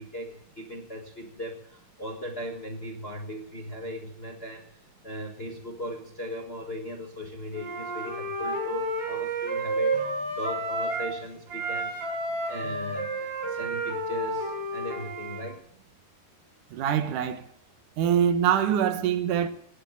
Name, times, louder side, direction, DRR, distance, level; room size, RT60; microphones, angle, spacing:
voice 1, 0.0-11.9 12.5-15.6, equal, 35° left, 1.0 m, -38 dB
Wind instrument woodwind instrument, 7.5-11.2 11.5-15.4, right 2 dB, 55° right, 6.1 m, -31 dB
voice 2, 16.7-17.4 18.0-19.5, right 9 dB, 85° right, 2.7 m, -24 dB
19.0 x 8.3 x 8.4 m
omnidirectional pair, 3.5 m